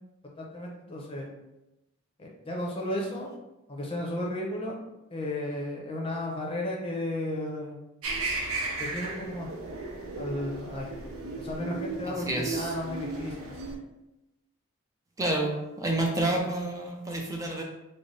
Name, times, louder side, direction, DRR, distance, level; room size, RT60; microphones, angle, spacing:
voice 1, 0.4-1.3 2.2-3.3 3.7-4.7 5.1-7.8 8.8-9.5 10.2-10.9 11.4-13.6, left 1 dB, 25° left, -2 dB, 0.7 m, -34 dB
sound 1, 8.0-13.8, right 3 dB, 75° right, 0.6 m, -35 dB
voice 2, 12.3-12.7 15.2-17.6, right 1 dB, 15° right, 0 dB, 0.4 m, -29 dB
4.0 x 2.0 x 3.2 m, 0.94 s
head